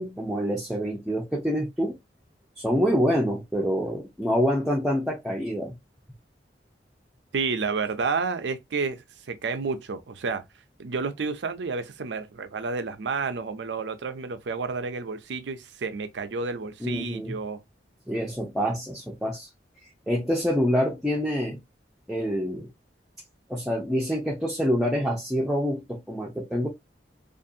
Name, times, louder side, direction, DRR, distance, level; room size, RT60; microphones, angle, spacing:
voice 1, 0.0-2.0 2.6-5.7 16.8-17.4 18.1-19.5 19.8-21.6 22.1-22.7 23.5-26.7, equal, ahead, 0.5 m, -26 dB
voice 2, 7.3-10.4 10.8-17.6, right 4 dB, 85° right, 0.5 m, -30 dB
2.6 x 2.5 x 2.6 m
head